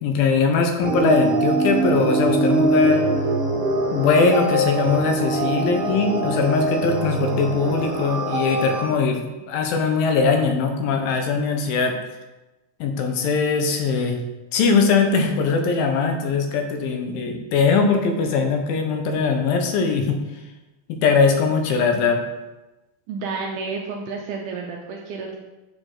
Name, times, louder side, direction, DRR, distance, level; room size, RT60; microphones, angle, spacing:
voice 1, 0.0-3.1 3.9-9.2 9.5-11.9 12.8-14.2 14.5-20.2 20.9-22.2, left 4 dB, 75° left, 4 dB, 2.5 m, -21 dB
sound 1, 0.8-8.8, right 2 dB, 50° right, 2.2 m, -23 dB
voice 2, 23.1-25.4, right 4 dB, 80° right, 0 dB, 1.9 m, -30 dB
7.9 x 6.2 x 3.8 m, 1.1 s
omnidirectional pair, 4.3 m